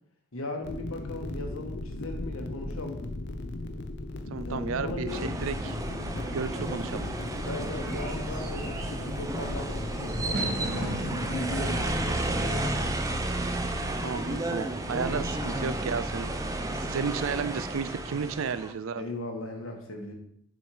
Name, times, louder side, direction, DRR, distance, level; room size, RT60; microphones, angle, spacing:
voice 1, 0.3-3.0 4.4-5.3 7.4-12.8 19.0-20.1, left 2 dB, 80° left, 3 dB, 1.4 m, -37 dB
sound 1, 0.6-10.6, left 2 dB, 55° left, 0.6 m, -36 dB
voice 2, 4.3-5.7 6.3-7.1 14.0-16.3 16.7-19.0, right 5 dB, 75° right, 13 dB, 0.4 m, -33 dB
sound 2, 5.1-18.7, right 1 dB, 15° right, 0.5 m, -32 dB
Bird / Fireworks, 6.3-15.5, equal, 50° right, 2.0 m, -41 dB
6.3 x 4.4 x 4.9 m, 0.70 s
head